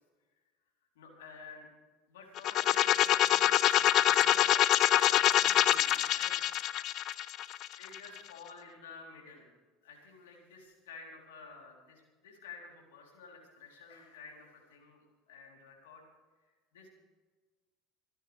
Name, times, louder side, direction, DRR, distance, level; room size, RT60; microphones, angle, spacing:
voice 1, 1.0-1.7 2.1-6.6 7.8-9.5 9.8-16.0 16.4-16.9, left 4 dB, 85° left, 0 dB, 3.7 m, -52 dB
sound 1, 2.4-8.2, left 12 dB, 55° left, 0.5 m, -25 dB
27.5 x 11.0 x 3.5 m, 1.3 s
hypercardioid pair, 80°, 0 cm